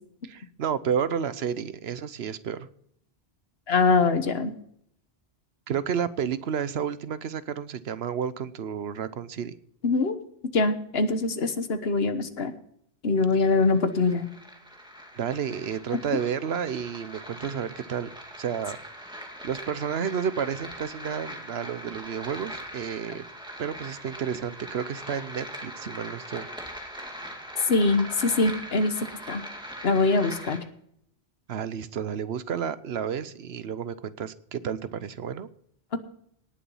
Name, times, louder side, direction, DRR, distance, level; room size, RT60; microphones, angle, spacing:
voice 1, 0.3-2.7 5.7-9.5 15.1-18.1 18.4-18.8 19.4-23.2 23.6-26.5 31.5-35.5, right 8 dB, 80° right, 14 dB, 1.0 m, -31 dB
voice 2, 3.7-4.5 9.8-10.2 10.5-12.5 13.0-14.3 27.7-28.9 29.3-29.4 29.8-30.6, left 3 dB, 70° left, 10 dB, 1.4 m, -23 dB
sound 1, 13.3-30.6, equal, 5° right, 2.3 m, -41 dB
18.5 x 7.1 x 5.5 m, 0.68 s
omnidirectional pair, 1.1 m